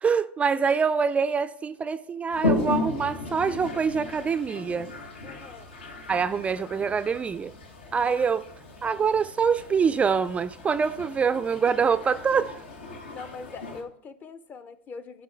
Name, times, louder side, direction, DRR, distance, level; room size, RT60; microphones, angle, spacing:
voice 1, 0.0-4.9 6.1-7.5 7.9-8.4 8.8-12.6, right 6 dB, 20° right, 0.3 m, -25 dB
Toilet flush, 2.3-13.8, left 2 dB, 80° left, 1.2 m, -35 dB
voice 2, 5.2-5.8 13.1-15.2, left 5 dB, 30° left, 0.6 m, -42 dB
9.7 x 5.2 x 4.4 m
hypercardioid pair, 90°, 6 cm